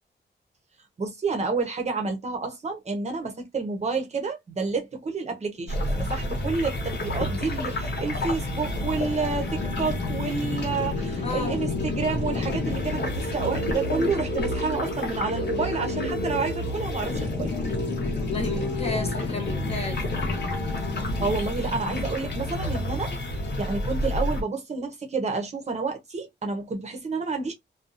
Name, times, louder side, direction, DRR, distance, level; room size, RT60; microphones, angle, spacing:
voice 1, 1.0-17.5 21.2-23.1 23.6-27.5, right 4 dB, 35° right, 0.7 m, -29 dB
sound 1, 5.7-24.4, left 1 dB, 70° left, 1.0 m, -29 dB
voice 2, 11.2-11.6 18.1-20.1, left 3 dB, 35° left, 0.8 m, -33 dB
2.6 x 2.2 x 2.4 m
wide cardioid pair, 175°, 19 cm